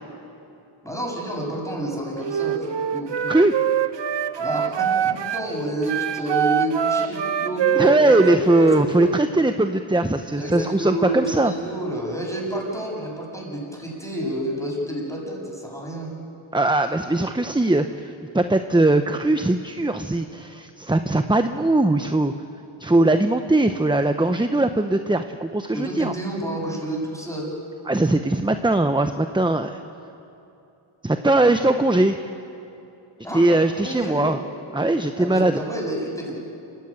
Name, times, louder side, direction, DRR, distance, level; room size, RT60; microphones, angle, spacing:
voice 1, 0.8-2.7 2.9-3.4 4.4-9.1 10.4-16.1 25.7-27.4 31.5-31.7 33.2-33.5 33.8-34.2 35.2-36.4, right 1 dB, 5° left, -2 dB, 7.8 m, -29 dB
Wind instrument woodwind instrument, 2.2-5.5 5.8-9.2, right 9 dB, 60° right, 0.9 m, -24 dB
voice 2, 7.8-11.5 16.5-17.9 18.3-22.3 22.8-26.1 27.9-29.8 31.0-32.2 33.3-34.4 34.7-35.6, right 2 dB, 10° right, 8 dB, 0.8 m, -20 dB
28.5 x 16.0 x 8.9 m, 2.8 s
wide cardioid pair, 65°, 48 cm